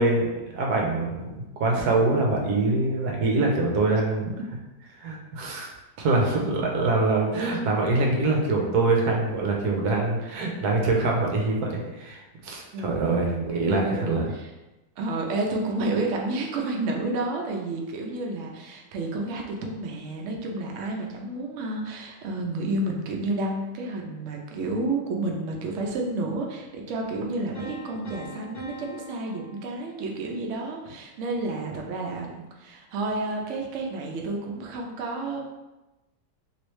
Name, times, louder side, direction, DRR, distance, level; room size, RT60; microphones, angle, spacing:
voice 1, 0.0-4.3 5.0-5.7 6.0-14.3, right 2 dB, 70° right, 0 dB, 1.1 m, -24 dB
voice 2, 12.7-14.5 15.0-35.4, right 2 dB, 90° right, 0 dB, 0.6 m, -30 dB
Piano, 27.5-30.4, left 1 dB, 45° left, 1.6 m, -43 dB
3.1 x 3.0 x 3.0 m, 1.0 s
omnidirectional pair, 1.9 m